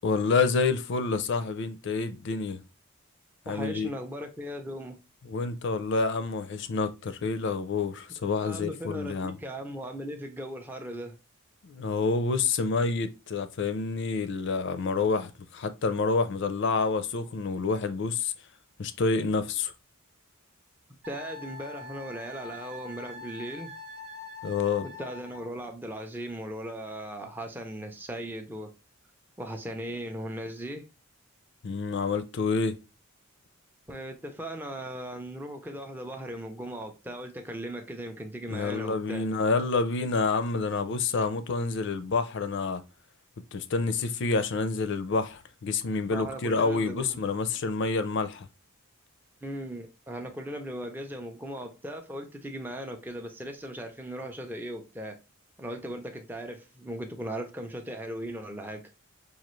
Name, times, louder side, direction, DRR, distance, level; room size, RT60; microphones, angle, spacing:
voice 1, 0.0-2.6 3.5-3.9 5.3-9.4 11.6-18.3 18.8-19.7 24.4-24.9 31.6-32.8 38.5-42.8 43.5-48.5, left 4 dB, 55° left, 0.4 m, -28 dB
voice 2, 3.5-5.0 8.4-11.2 21.1-23.7 24.8-28.7 29.4-30.9 33.9-39.3 46.1-47.2 49.4-55.2 55.6-58.9, right 1 dB, 10° right, 0.4 m, -38 dB
Wind instrument woodwind instrument, 21.0-25.5, left 3 dB, 50° right, 0.6 m, -44 dB
5.0 x 2.4 x 3.0 m
head